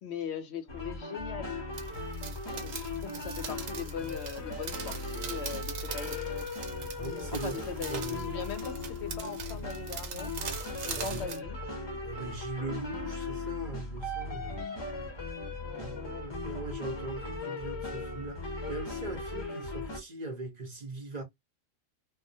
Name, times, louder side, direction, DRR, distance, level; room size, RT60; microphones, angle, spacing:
voice 1, 0.0-1.6 2.5-6.3 7.4-10.4 10.9-11.6 14.5-14.8 15.6-16.3, left 7 dB, 65° left, 0.7 m, -40 dB
sound 1, 0.7-20.0, left 3 dB, 35° left, 0.4 m, -38 dB
sound 2, 1.7-11.4, right 6 dB, 85° right, 1.0 m, -42 dB
voice 2, 7.0-7.6 7.9-8.4 10.9-11.3 12.0-14.6 15.8-21.2, right 3 dB, 45° right, 0.6 m, -40 dB
2.2 x 2.1 x 2.6 m
omnidirectional pair, 1.4 m